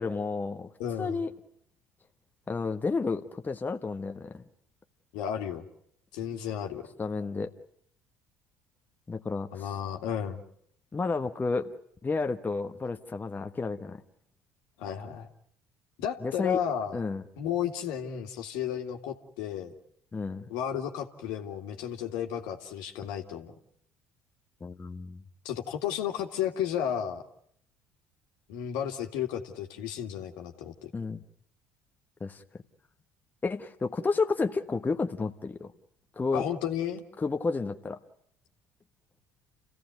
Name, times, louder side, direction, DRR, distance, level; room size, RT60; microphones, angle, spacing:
voice 1, 0.0-0.7 1.0-1.3 2.5-4.4 7.0-7.5 9.1-9.7 10.9-11.7 12.0-14.0 16.2-16.6 16.9-17.2 20.1-20.4 24.6-25.2 30.9-31.2 32.2-32.4 33.4-35.7 36.2-36.4 37.2-38.0, left 4 dB, 25° left, 6 dB, 1.3 m, -31 dB
voice 2, 0.8-1.2 5.1-5.6 6.1-6.9 9.5-10.4 14.8-15.3 16.0-17.0 17.4-19.7 20.5-23.5 25.4-27.2 28.5-30.9 36.3-37.1, left 9 dB, 70° left, 4 dB, 2.2 m, -33 dB
29.5 x 16.0 x 9.4 m, 0.70 s
hypercardioid pair, 65°, 7 cm